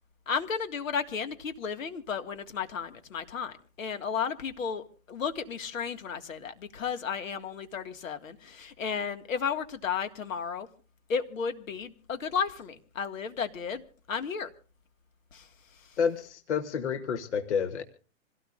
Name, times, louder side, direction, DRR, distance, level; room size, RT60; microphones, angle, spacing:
voice 1, 0.3-10.7 11.1-13.8 14.1-14.5 15.3-15.5, left 6 dB, 75° left, 2.0 m, -33 dB
voice 2, 16.0-17.8, left 6 dB, 55° left, 1.4 m, -29 dB
26.5 x 17.0 x 2.5 m
hypercardioid pair, 175°, 40 cm